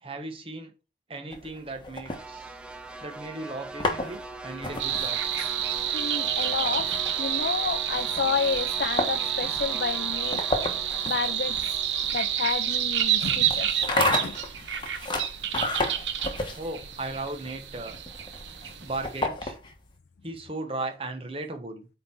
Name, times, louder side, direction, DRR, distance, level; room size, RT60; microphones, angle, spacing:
voice 1, 0.0-0.7 1.1-2.6 3.0-5.2 16.6-17.9 18.8-19.6 20.2-21.9, right 2 dB, 30° right, 1.2 m, -36 dB
sound 1, 1.3-2.9 3.5-19.9, left 2 dB, 25° left, 1.2 m, -33 dB
sound 2, 2.0-14.3, right 2 dB, 5° right, 0.5 m, -42 dB
sound 3, 4.8-19.2, right 10 dB, 85° right, 0.9 m, -29 dB
voice 2, 5.9-10.4 10.8-11.8 12.1-13.7 14.1-14.4, left 6 dB, 60° left, 0.4 m, -30 dB
8.5 x 3.8 x 4.4 m
head